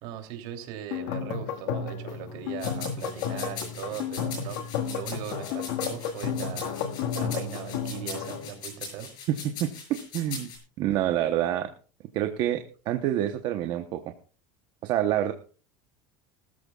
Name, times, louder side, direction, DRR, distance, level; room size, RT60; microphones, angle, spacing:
voice 1, 0.0-9.1, right 10 dB, 60° right, 4 dB, 3.0 m, -39 dB
sound 1, 0.9-8.5, left 7 dB, 80° left, 1.7 m, -32 dB
sound 2, 2.6-10.6, left 5 dB, 45° left, 7.5 m, -40 dB
voice 2, 9.3-10.5 10.8-11.7 12.1-14.0 14.8-15.3, right 12 dB, 45° right, 6 dB, 0.9 m, -27 dB
20.5 x 14.0 x 2.4 m, 0.38 s
cardioid pair, 160°, 10 cm